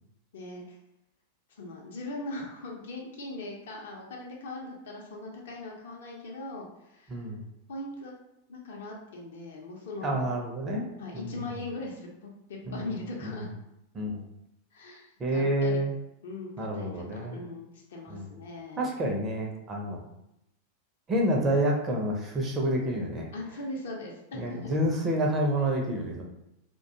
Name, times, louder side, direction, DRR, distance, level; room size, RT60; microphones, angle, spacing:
voice 1, 0.3-0.6 1.6-7.1 7.7-8.1 8.5-10.3 11.0-13.5 14.7-15.8 16.2-18.9 23.3-24.8, left 2 dB, 60° left, -1 dB, 0.6 m, -40 dB
voice 2, 7.1-7.4 10.0-10.8 11.1-11.4 12.7-12.9 13.2-13.5 13.9-14.3 15.2-15.9 16.6-17.4 18.1-18.3 18.8-20.0 21.1-23.3 24.4-26.2, right 1 dB, 25° right, 0 dB, 0.5 m, -28 dB
2.3 x 2.2 x 2.7 m, 0.85 s
figure-of-eight pair, 90°, 0 cm